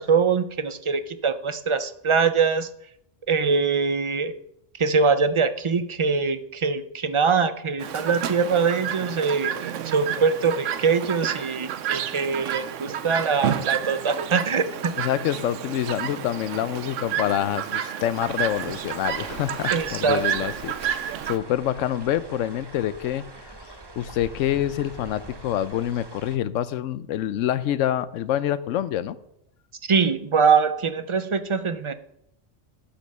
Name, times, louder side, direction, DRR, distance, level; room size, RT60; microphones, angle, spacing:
voice 1, 0.0-2.7 3.3-4.3 4.8-14.9 19.7-20.5 29.9-31.9, right 5 dB, 55° right, 11 dB, 0.3 m, -23 dB
Chirp tweet, 7.8-21.4, right 9 dB, 80° right, 1.0 m, -30 dB
voice 2, 15.0-23.5 24.0-29.2, left 11 dB, 85° left, 15 dB, 1.0 m, -26 dB
sound 1, 18.2-26.4, right 2 dB, 25° right, 0.8 m, -44 dB
11.5 x 5.3 x 6.5 m, 0.77 s
omnidirectional pair, 1.3 m